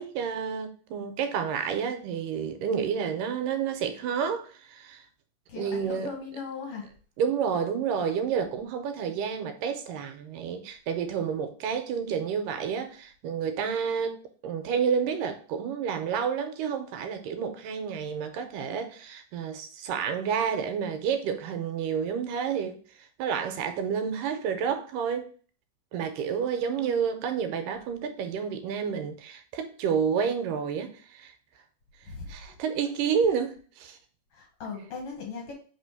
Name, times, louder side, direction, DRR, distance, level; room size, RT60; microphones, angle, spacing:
voice 1, 0.0-5.0 5.6-6.1 7.2-14.2 14.4-25.3 25.9-31.3 32.3-34.0, right 7 dB, 80° right, 2.2 m, -30 dB
voice 2, 5.5-6.9 26.5-27.0 32.0-32.3 34.3-35.5, left 5 dB, 60° left, 1.6 m, -39 dB
5.0 x 3.3 x 5.6 m
omnidirectional pair, 4.0 m